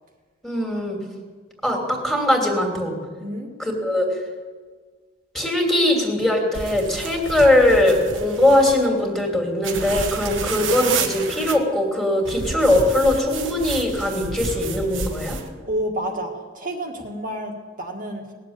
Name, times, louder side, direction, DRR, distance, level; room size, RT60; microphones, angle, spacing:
voice 1, 0.4-1.0 1.6-3.0 3.6-4.1 5.3-15.4, left 1 dB, ahead, 0 dB, 2.9 m, -20 dB
sound 1, 6.5-8.9 9.6-11.6 12.3-15.5, right 4 dB, 75° right, 1.4 m, -30 dB
voice 2, 15.7-18.2, right 1 dB, 45° right, 0 dB, 1.8 m, -29 dB
20.0 x 7.6 x 8.8 m, 1.5 s
head